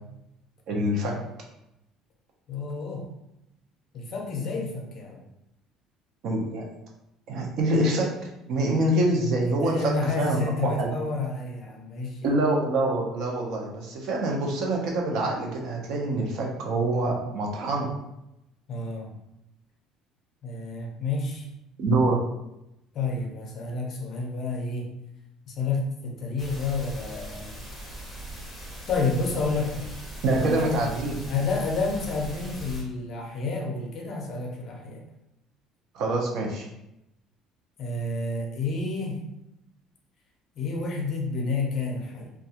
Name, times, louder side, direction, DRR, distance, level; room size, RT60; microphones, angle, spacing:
voice 1, 0.7-1.2 6.2-6.7 7.3-10.9 12.2-17.9 21.8-22.2 30.2-31.2 35.9-36.7, right 2 dB, 60° right, 0 dB, 0.5 m, -25 dB
voice 2, 2.5-3.1 3.9-5.2 9.6-12.3 18.7-19.1 20.4-21.5 22.9-24.9 25.5-27.5 28.9-29.9 30.3-30.8 31.3-35.0 37.8-39.2 40.6-42.3, left 3 dB, 40° left, 0 dB, 0.5 m, -30 dB
sound 1, 26.4-32.8, right 1 dB, ahead, 0.7 m, -40 dB
2.3 x 2.2 x 2.8 m, 0.86 s
cardioid pair, 150°, 0 cm